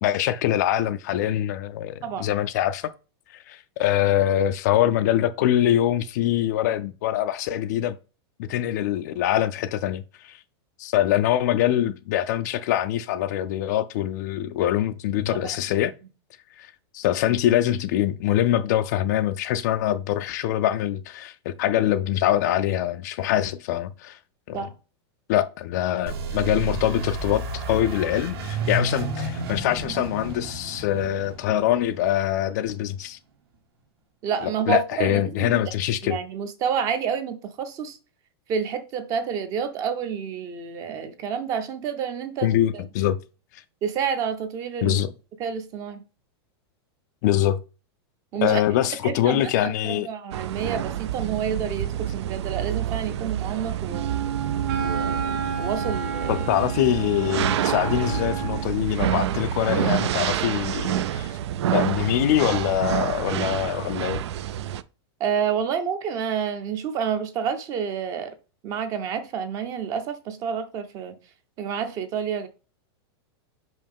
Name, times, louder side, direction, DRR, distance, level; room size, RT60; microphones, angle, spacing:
voice 1, 0.0-2.9 3.3-8.0 8.5-10.4 10.8-15.9 16.6-24.2 24.5-24.6 25.3-33.2 34.7-36.2 42.4-43.2 44.8-45.1 47.2-47.6 48.4-50.1 56.3-61.4 61.7-64.2, left 12 dB, 40° left, 0.3 m, -24 dB
voice 2, 15.3-15.6 24.5-24.7 34.2-35.6 36.0-38.0 38.5-42.8 43.8-45.0 45.4-46.0 48.3-48.6 49.0-54.1 54.8-56.5 65.2-68.3 68.6-71.2 71.6-72.5, right 7 dB, 25° right, 0.6 m, -29 dB
sound 1, 26.1-32.6, right 2 dB, 60° right, 1.7 m, -31 dB
sound 2, 50.3-64.8, right 11 dB, 80° right, 0.5 m, -28 dB
Wind instrument woodwind instrument, 53.9-58.7, right 5 dB, 40° right, 1.1 m, -31 dB
5.5 x 5.3 x 3.5 m
supercardioid pair, 170°, 14 cm